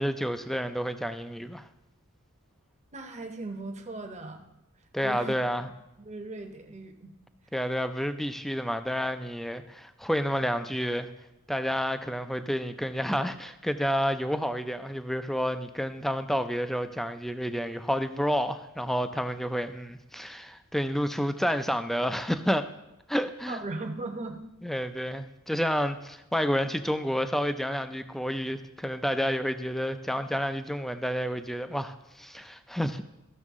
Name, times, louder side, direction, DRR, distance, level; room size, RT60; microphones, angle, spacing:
voice 1, 0.0-1.7 4.9-5.7 7.5-11.1 11.5-22.7 23.1-23.6 24.6-33.0, equal, ahead, 10 dB, 0.4 m, -30 dB
voice 2, 2.9-4.4 5.0-5.3 6.0-7.1 23.5-24.5, right 2 dB, 30° right, 5 dB, 0.9 m, -38 dB
14.0 x 6.4 x 3.6 m, 0.91 s
head